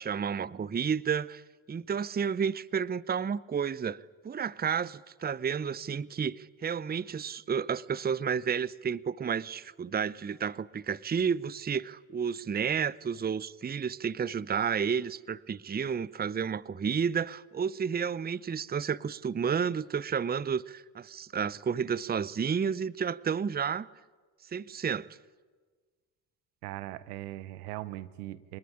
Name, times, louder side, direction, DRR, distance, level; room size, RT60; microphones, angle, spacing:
voice 1, 0.0-1.4 1.7-23.9 24.5-25.1, right 7 dB, 20° right, 0.7 m, -31 dB
voice 2, 26.6-28.6, right 16 dB, 85° right, 1.0 m, -40 dB
23.5 x 19.5 x 10.0 m
hypercardioid pair, 55°, 45 cm